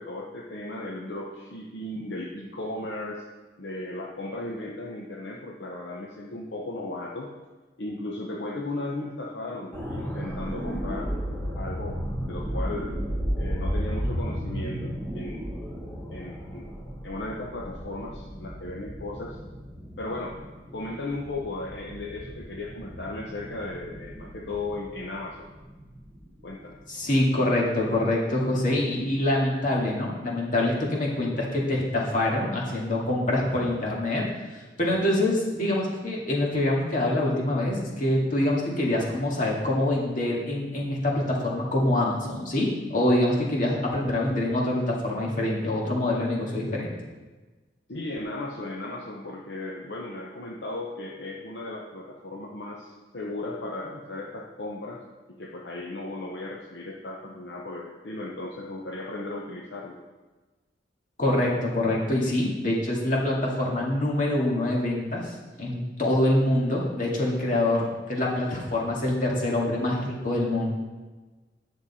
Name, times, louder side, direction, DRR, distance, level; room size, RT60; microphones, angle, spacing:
voice 1, 0.0-3.3 3.6-7.3 7.8-11.1 11.6-13.0 13.4-15.5 16.1-16.8 17.0-19.4 20.0-20.4 20.7-25.5 26.4-26.8 47.9-60.0, left 2 dB, 70° left, -1 dB, 0.8 m, -36 dB
sound 1, 9.7-27.6 28.0-28.1, equal, 15° left, 1.5 m, -34 dB
voice 2, 26.9-34.2 34.5-47.0 61.2-70.7, left 1 dB, 50° left, -3 dB, 2.0 m, -25 dB
9.9 x 6.6 x 4.2 m, 1.2 s
head